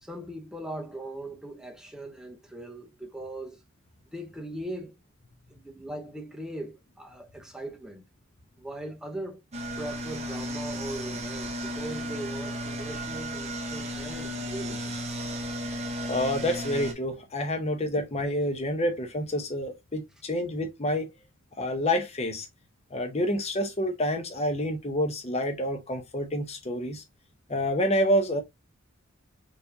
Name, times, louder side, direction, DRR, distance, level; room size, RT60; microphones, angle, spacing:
voice 1, 0.0-3.6 4.1-5.0 5.5-8.1 8.6-9.4 9.8-15.0, right 1 dB, 5° right, 0.8 m, -39 dB
sound 1, 9.5-16.9, equal, 30° right, 0.8 m, -34 dB
voice 2, 16.0-21.1 21.6-22.5 22.9-27.0 27.5-28.4, equal, 30° left, 0.8 m, -28 dB
4.5 x 3.3 x 2.7 m
head